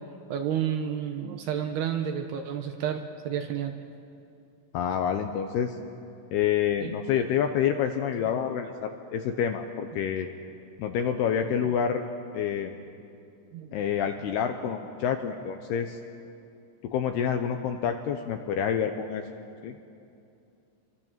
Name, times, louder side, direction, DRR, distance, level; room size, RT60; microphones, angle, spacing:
voice 1, 0.3-3.7 6.8-7.3 8.2-8.4 13.5-13.7, right 9 dB, 70° right, 5 dB, 2.7 m, -31 dB
voice 2, 4.7-5.8 6.3-10.3 10.8-12.0 12.3-12.7 13.7-16.0 16.9-19.2 19.6-19.7, left 8 dB, 75° left, 6 dB, 2.5 m, -28 dB
27.0 x 24.5 x 7.4 m, 2.6 s
omnidirectional pair, 5.5 m